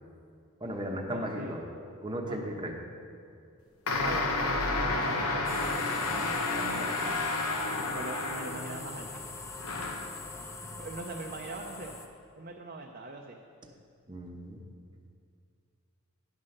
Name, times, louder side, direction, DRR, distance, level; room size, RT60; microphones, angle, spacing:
voice 1, 0.6-1.6 2.0-2.7 14.1-14.6, equal, 20° right, 0 dB, 0.9 m, -35 dB
voice 2, 1.1-1.7 2.3-2.6 4.0-5.4 6.5-7.1 7.9-9.2 10.4-11.9 12.4-13.4, right 2 dB, 45° right, 1 dB, 0.5 m, -42 dB
sound 1, 3.9-8.9 9.6-10.2, left 2 dB, 90° left, 0.9 m, -31 dB
sound 2, 5.4-12.1, left 3 dB, 15° left, 0.6 m, -42 dB
9.8 x 5.7 x 6.4 m, 2.3 s
head